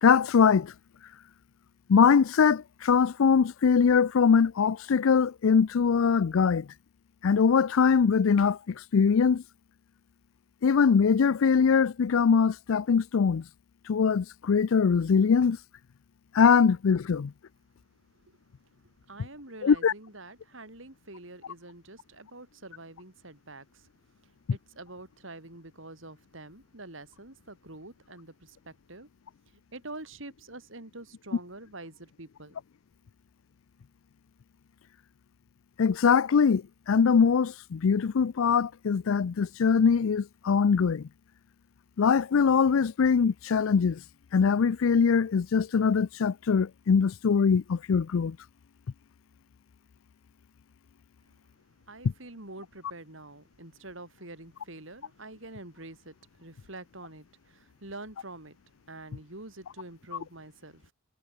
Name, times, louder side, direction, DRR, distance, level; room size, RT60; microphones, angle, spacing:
voice 1, 0.0-0.7 1.9-6.7 7.2-9.4 10.6-13.4 13.9-15.6 16.3-17.3 19.6-19.9 35.8-41.0 42.0-44.0 44.3-48.4, left 6 dB, 75° left, 0.4 m, -22 dB
voice 2, 18.7-23.9 24.2-29.1 29.5-32.6 51.3-51.4 51.9-58.6 58.9-60.9, right 2 dB, 65° right, 4.2 m, -46 dB
head